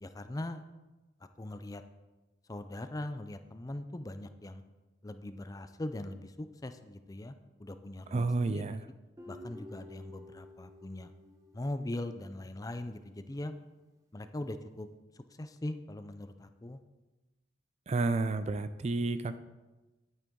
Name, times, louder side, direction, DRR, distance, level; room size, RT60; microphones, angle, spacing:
voice 1, 0.0-0.6 1.4-1.8 2.5-4.6 5.0-7.3 7.6-8.6 9.3-11.1 11.5-13.6 14.1-14.9 15.2-16.8, left 1 dB, 20° left, 10 dB, 0.5 m, -40 dB
voice 2, 8.1-8.8 17.9-19.4, right 3 dB, 35° right, 12 dB, 0.4 m, -30 dB
Guitar, 9.2-12.5, left 1 dB, 20° right, 1.1 m, -52 dB
11.0 x 8.9 x 3.8 m, 1.1 s
head